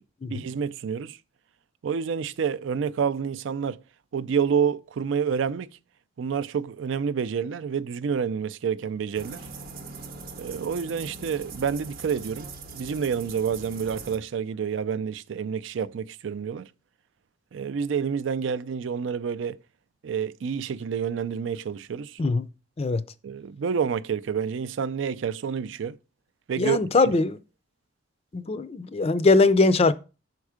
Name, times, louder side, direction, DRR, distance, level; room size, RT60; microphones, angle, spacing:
voice 1, 0.3-1.2 1.8-3.8 4.1-5.7 6.2-9.4 10.4-16.7 17.5-19.6 20.0-22.2 23.2-26.0 26.5-26.8 27.0-27.1, right 7 dB, 65° right, 0.4 m, -28 dB
sound 1, 9.1-14.2, right 3 dB, 50° right, 0.8 m, -41 dB
voice 2, 26.6-27.4 28.3-29.9, left 3 dB, 30° left, 0.4 m, -21 dB
6.3 x 4.6 x 4.9 m
head